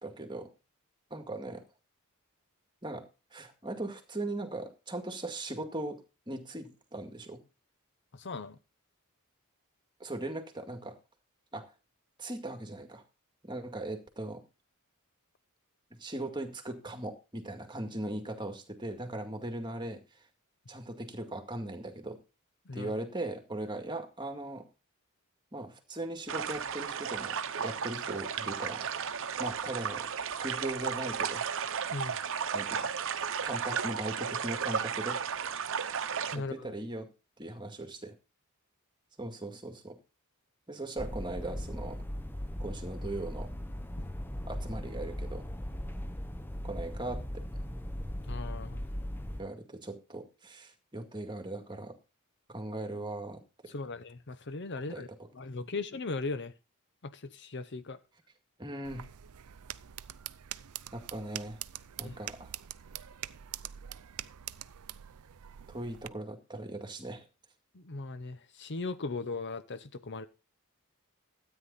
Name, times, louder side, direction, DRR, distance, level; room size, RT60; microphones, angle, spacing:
voice 1, 0.0-0.5 1.1-1.6 2.8-3.0 3.3-6.0 6.3-7.4 10.0-11.0 11.5-11.7 12.2-13.0 13.4-14.4 16.0-20.0 20.7-22.2 22.7-24.7 25.5-28.9 29.4-31.4 32.5-32.9 33.4-35.2 36.4-37.1 37.4-38.1 39.2-40.0 40.7-42.0 42.6-43.5 44.5-45.4 46.6-47.5 49.4-52.0 52.5-53.7 54.9-55.1 58.6-59.1 60.9-61.6 62.0-62.5 65.7-67.3, right 2 dB, 20° right, 6 dB, 2.0 m, -39 dB
voice 2, 8.1-8.6 22.7-23.0 31.9-32.2 36.3-36.7 48.3-48.8 53.7-55.1 55.3-56.5 57.0-58.0 62.0-62.2 67.7-70.3, left 3 dB, 50° left, 12 dB, 0.8 m, -38 dB
sound 1, 26.3-36.4, right 7 dB, 60° right, 0.9 m, -34 dB
sound 2, 41.0-49.4, equal, 10° left, 0.8 m, -38 dB
sound 3, 58.8-66.1, right 12 dB, 80° right, 0.5 m, -44 dB
13.0 x 9.4 x 4.1 m, 0.29 s
head